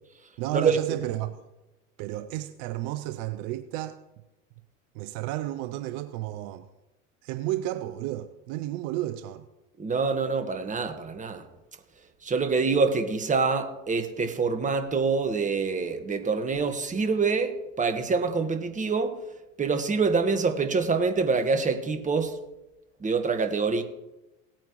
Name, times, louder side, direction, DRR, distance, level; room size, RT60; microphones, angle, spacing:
voice 1, 0.4-1.4 2.0-4.0 4.9-6.7 7.2-9.4, right 14 dB, 60° right, 0.7 m, -32 dB
voice 2, 9.8-11.4 12.2-19.1 19.6-22.3 23.0-23.8, right 4 dB, 20° right, 1.4 m, -26 dB
18.0 x 9.0 x 3.1 m
hypercardioid pair, 85°, 38 cm